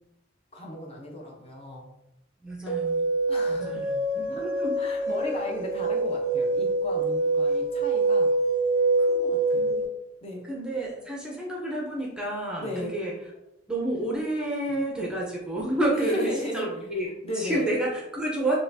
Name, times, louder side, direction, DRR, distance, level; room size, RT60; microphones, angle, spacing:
voice 1, 0.5-1.8 3.3-3.9 4.3-4.4 4.8-8.3 9.0-9.7 10.2-10.5 12.6-12.9 15.9-16.7 17.2-17.7, left 1 dB, 30° left, -1 dB, 0.7 m, -35 dB
voice 2, 2.4-3.0 3.5-4.7 9.5-9.9 10.4-13.1 13.7-17.1 17.3-18.5, right 1 dB, 5° right, -3 dB, 0.6 m, -30 dB
sound 1, 2.7-9.8, right 2 dB, 65° left, 1.4 m, -25 dB
5.6 x 2.3 x 2.6 m, 0.90 s
head